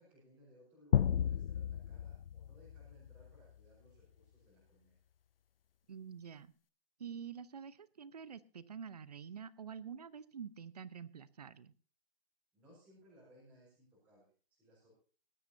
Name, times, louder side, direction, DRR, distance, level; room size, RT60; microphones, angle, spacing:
voice 1, 0.0-5.0 12.5-14.9, equal, 5° right, -9 dB, 5.1 m, -64 dB
sound 1, 0.9-3.5, left 9 dB, 65° left, 0.5 m, -34 dB
voice 2, 5.9-6.5 7.0-11.7, right 7 dB, 40° right, 17 dB, 0.8 m, -47 dB
19.5 x 13.0 x 2.7 m, 0.40 s
hypercardioid pair, 170°, 30 cm